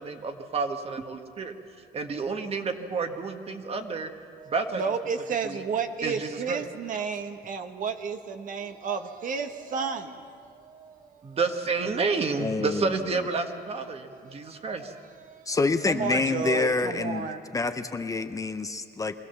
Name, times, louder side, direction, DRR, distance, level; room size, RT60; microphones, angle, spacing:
voice 1, 0.0-1.5 1.9-4.1 4.5-4.8 5.4-5.6 6.0-6.6 11.2-14.9, right 4 dB, 35° right, 6 dB, 1.6 m, -30 dB
voice 2, 4.4-11.4 13.9-15.6 15.9-17.4, right 6 dB, 50° right, 7 dB, 1.2 m, -33 dB
voice 3, 12.4-13.1 15.5-17.3 17.5-19.2, left 3 dB, 20° left, 8 dB, 0.7 m, -27 dB
23.5 x 16.5 x 7.1 m, 2.4 s
cardioid pair, 110°, 17 cm